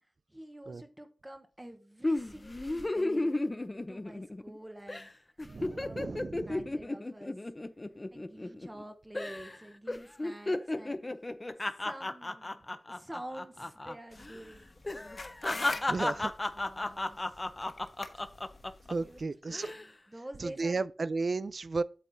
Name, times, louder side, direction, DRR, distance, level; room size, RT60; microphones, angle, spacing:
voice 1, 0.0-3.4 3.9-5.1 5.8-6.1 6.4-7.4 8.1-11.0 11.8-12.6 12.9-14.7 15.5-16.3 16.5-17.5 19.0-20.9, right 1 dB, 15° right, 0.9 m, -48 dB
sound 1, 2.0-4.6 4.9-5.1 5.4-8.8 9.1-9.6 9.9-13.9 14.2-14.4 14.8-18.9 19.4-19.8, left 2 dB, 30° left, 0.6 m, -34 dB
voice 2, 5.4-6.7 15.9-16.3 18.9-19.7 20.4-21.8, right 3 dB, 60° right, 0.4 m, -34 dB
sound 2, 14.1-19.2, left 3 dB, 55° left, 1.2 m, -46 dB
8.3 x 7.1 x 2.6 m
wide cardioid pair, 85°, 0 cm